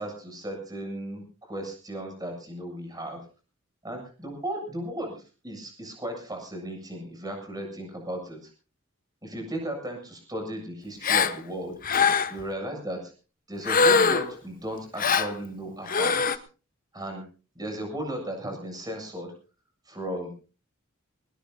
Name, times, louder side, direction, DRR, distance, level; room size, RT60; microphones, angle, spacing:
voice 1, 0.0-3.2 3.8-8.5 9.2-11.7 12.3-13.1 13.5-16.4 16.9-17.2 17.5-19.3 19.9-20.4, right 1 dB, 20° right, 3 dB, 7.6 m, -35 dB
Gasp, 11.0-11.4 11.8-12.4 13.7-14.4 15.0-15.3 15.9-16.4, left 5 dB, 40° left, 1.1 m, -22 dB
22.0 x 20.0 x 2.7 m, 0.36 s
head